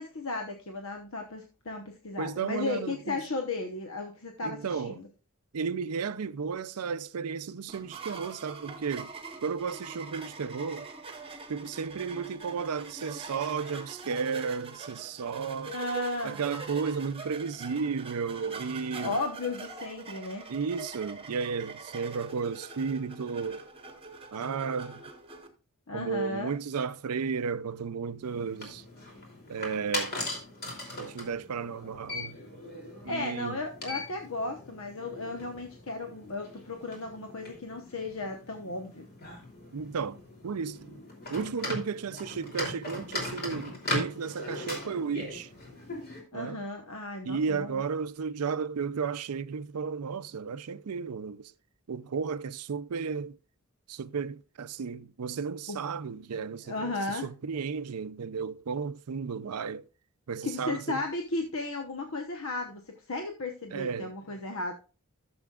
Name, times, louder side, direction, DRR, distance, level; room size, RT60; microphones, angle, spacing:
voice 1, 0.0-5.1 15.7-16.4 19.0-20.5 25.9-26.5 33.1-39.1 46.3-47.8 55.7-55.8 56.7-57.3 60.4-64.7, left 2 dB, 65° left, 1.1 m, -35 dB
voice 2, 2.2-3.2 4.4-5.0 5.5-9.1 9.4-10.9 11.5-15.7 16.2-19.2 20.5-23.6 24.3-25.0 25.9-28.8 29.5-30.2 31.0-32.4 33.0-33.6 39.7-41.0 41.3-45.5 46.3-46.6 47.2-51.5 51.9-53.4 53.9-59.8 60.3-61.0 63.7-64.1, right 5 dB, 90° right, 0.5 m, -33 dB
sound 1, 7.7-25.5, right 3 dB, 25° right, 1.2 m, -43 dB
sound 2, 28.2-46.2, left 2 dB, 45° left, 3.0 m, -39 dB
14.0 x 7.0 x 2.4 m
head